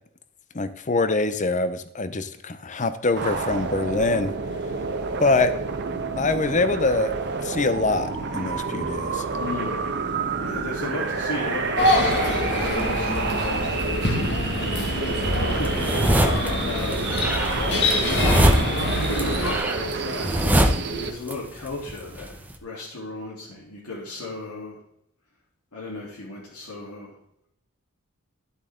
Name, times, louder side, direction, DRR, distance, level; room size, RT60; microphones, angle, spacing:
voice 1, 0.5-4.3 5.2-5.5 6.2-7.1 7.4-9.2, left 3 dB, 35° left, 12 dB, 0.8 m, -24 dB
sound 1, 3.1-21.1, right 4 dB, 50° right, 1.2 m, -29 dB
voice 2, 9.4-10.0 10.4-14.4 15.0-18.4 18.8-24.8 25.7-27.2, left 2 dB, 90° left, -7 dB, 3.6 m, -36 dB
sound 2, 11.8-19.6, left 1 dB, 50° left, 2.2 m, -25 dB
sound 3, 15.6-16.5 16.9-21.3 21.6-22.5, equal, 5° right, 0.9 m, -23 dB
11.5 x 8.1 x 3.8 m, 0.76 s
head